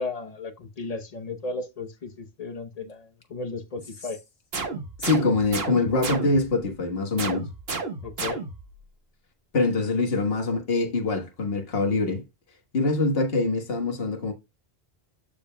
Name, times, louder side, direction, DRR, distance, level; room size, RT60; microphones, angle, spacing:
voice 1, 0.0-4.2 8.0-8.4, left 3 dB, 40° left, 0.9 m, -35 dB
sound 1, 4.5-6.6 7.2-8.8, right 4 dB, 65° right, 1.5 m, -32 dB
voice 2, 4.7-7.5 9.5-12.2 12.7-14.3, left 3 dB, 65° left, 1.6 m, -24 dB
14.0 x 5.2 x 2.2 m
omnidirectional pair, 1.1 m